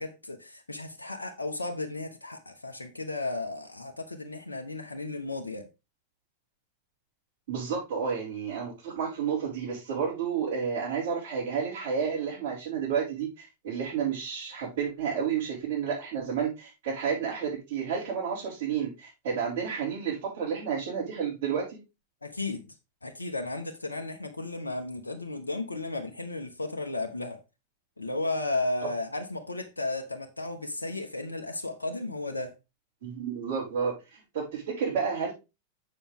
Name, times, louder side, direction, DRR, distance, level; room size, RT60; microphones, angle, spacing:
voice 1, 0.0-5.7 22.2-22.7 23.0-27.4 28.0-32.5, left 2 dB, 80° left, 1.0 m, -34 dB
voice 2, 7.5-21.8 33.0-35.3, right 6 dB, 60° right, 5.3 m, -31 dB
7.5 x 7.1 x 3.6 m
figure-of-eight pair, 90°, 0 cm